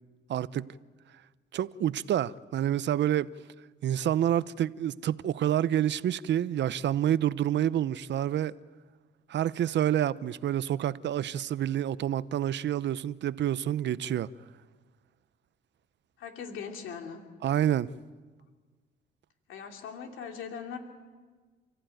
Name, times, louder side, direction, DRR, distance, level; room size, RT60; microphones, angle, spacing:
voice 1, 0.3-0.7 1.5-3.3 3.8-8.5 9.3-14.3 17.4-17.9, right 11 dB, 65° right, 0.7 m, -28 dB
voice 2, 16.2-17.2 19.5-20.8, left 6 dB, 85° left, 2.8 m, -40 dB
29.5 x 14.5 x 9.2 m
cardioid pair, 90°, 20 cm